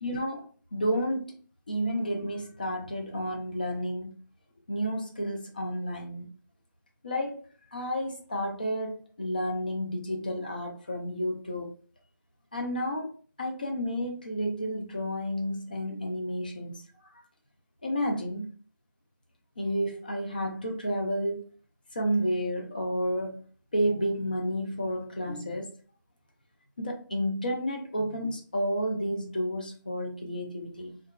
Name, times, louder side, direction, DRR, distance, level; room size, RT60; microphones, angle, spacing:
voice 1, 0.0-0.4 0.7-1.3 1.7-4.1 4.7-6.3 7.0-7.4 7.7-11.7 12.5-16.8 17.8-18.5 19.6-21.4 21.9-23.4 23.7-25.7 26.8-31.0, equal, 25° left, 0.4 m, -31 dB
2.7 x 2.3 x 2.3 m
figure-of-eight pair, 170°, 11 cm